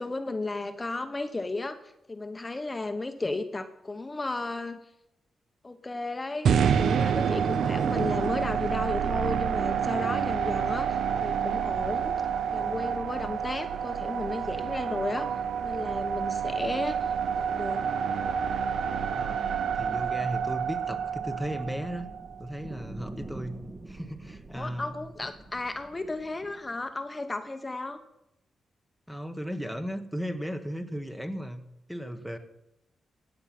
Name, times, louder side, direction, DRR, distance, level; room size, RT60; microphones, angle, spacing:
voice 1, 0.0-1.8 2.1-4.8 5.6-12.1 12.5-15.3 15.6-17.8 24.5-28.0, left 2 dB, 20° left, 8 dB, 1.0 m, -34 dB
sound 1, 6.5-22.6, right 7 dB, 80° right, 0.7 m, -28 dB
sound 2, 18.7-26.9, right 2 dB, 40° right, 1.9 m, -46 dB
voice 2, 19.2-19.5 19.7-22.1 22.4-23.6 23.9-24.9 29.1-31.6 31.9-32.4, equal, ahead, 8 dB, 1.1 m, -35 dB
16.0 x 8.7 x 6.0 m, 0.86 s
cardioid pair, 105°, 0 cm